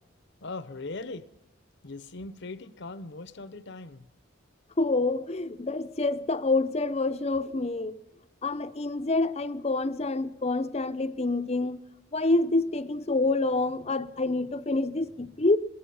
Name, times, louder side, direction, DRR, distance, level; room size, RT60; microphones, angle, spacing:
voice 1, 0.4-1.3 1.8-4.1, left 3 dB, 60° left, 0.9 m, -40 dB
voice 2, 4.8-7.9 8.4-11.8 12.1-15.6, left 2 dB, 30° left, 0.7 m, -27 dB
25.5 x 20.5 x 5.5 m
head